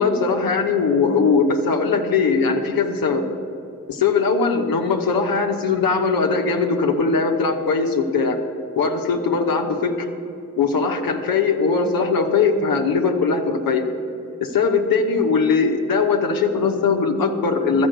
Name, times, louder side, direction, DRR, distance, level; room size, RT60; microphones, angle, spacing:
voice 1, 0.0-3.2 3.9-8.4 8.8-10.1 10.6-13.8 14.4-17.9, left 4 dB, 90° left, 2 dB, 1.0 m, -20 dB
12.5 x 7.2 x 7.9 m, 2.8 s
supercardioid pair, 40°, 34 cm